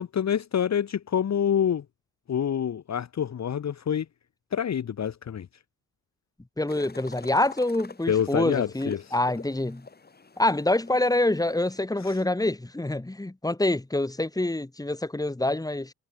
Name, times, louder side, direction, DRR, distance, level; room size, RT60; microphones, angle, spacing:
voice 1, 0.0-1.8 2.3-4.1 4.5-5.5 8.1-9.2 12.0-12.2, left 8 dB, 45° left, 1.4 m, -27 dB
voice 2, 6.6-9.9 10.4-15.9, left 2 dB, 10° left, 4.8 m, -26 dB
sound 1, 6.7-11.8, left 4 dB, 25° left, 3.9 m, -46 dB
wide cardioid pair, 155°, 37 cm